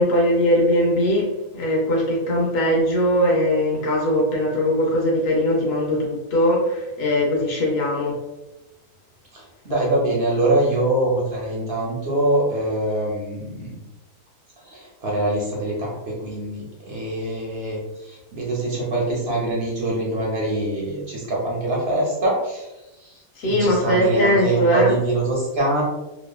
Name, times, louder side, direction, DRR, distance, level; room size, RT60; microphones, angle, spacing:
voice 1, 0.0-8.2 23.4-24.9, equal, 70° left, -2 dB, 0.5 m, -20 dB
voice 2, 9.3-13.8 14.6-22.7 23.0-25.8, right 2 dB, 60° right, -3 dB, 0.6 m, -24 dB
2.8 x 2.2 x 2.2 m, 1.0 s
omnidirectional pair, 1.6 m